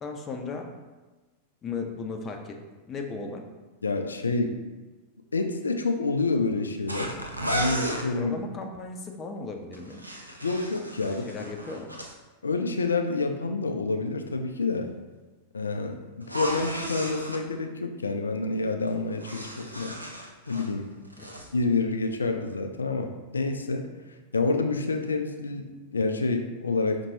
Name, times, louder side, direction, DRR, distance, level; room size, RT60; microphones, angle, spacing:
voice 1, 0.0-0.7 1.6-2.6 2.9-3.4 8.1-10.0 11.0-11.9 21.2-21.3, left 4 dB, 25° left, 3 dB, 0.5 m, -36 dB
voice 2, 3.8-4.6 5.3-7.1 7.5-8.4 10.4-11.4 12.4-14.9 15.5-20.0 20.5-20.8 21.5-23.9 24.3-27.0, left 3 dB, 75° left, 5 dB, 0.3 m, -28 dB
sound 1, 6.9-8.1 9.7-12.1 16.2-17.4 18.9-20.7 21.0-21.5, equal, 85° right, 0.4 m, -34 dB
5.3 x 2.9 x 2.7 m, 1.2 s
figure-of-eight pair, 90°, 0 cm